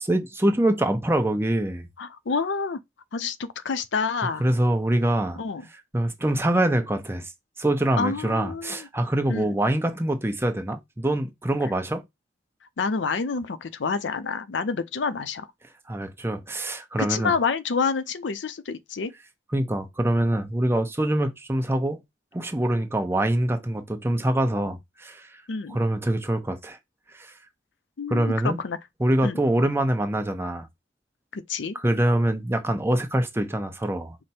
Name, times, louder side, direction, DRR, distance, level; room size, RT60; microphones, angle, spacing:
voice 1, 0.0-1.9 4.4-5.4 5.9-7.3 7.6-12.0 15.9-17.3 19.5-22.0 22.3-25.3 25.7-26.8 27.1-27.3 28.1-28.6 29.0-30.7 31.7-34.2, right 1 dB, 15° right, 0.7 m, -24 dB
voice 2, 2.0-2.8 3.1-4.5 5.4-5.6 8.0-8.9 9.3-9.5 12.8-15.5 17.0-19.1 25.5-25.8 28.0-28.8 29.2-29.4 31.3-31.8, left 5 dB, 85° left, 0.5 m, -28 dB
5.0 x 2.1 x 4.3 m
head